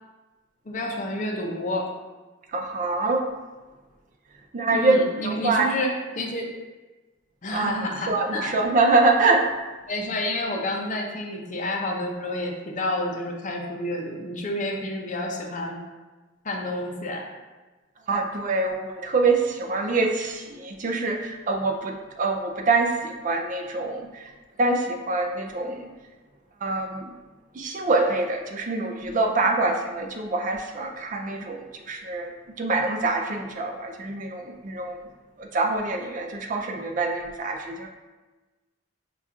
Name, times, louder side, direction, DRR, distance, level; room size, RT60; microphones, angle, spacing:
voice 1, 0.7-1.9 4.7-6.5 7.4-8.6 9.9-15.8 16.4-17.3, left 1 dB, 40° left, 1 dB, 0.6 m, -29 dB
voice 2, 2.5-3.3 4.5-5.7 7.5-7.7 8.1-9.5 18.1-24.3 24.6-25.9 26.6-27.1 27.5-32.3 32.6-35.0 35.4-37.9, right 3 dB, 40° right, 3 dB, 0.4 m, -25 dB
5.7 x 2.4 x 3.6 m, 1.2 s
head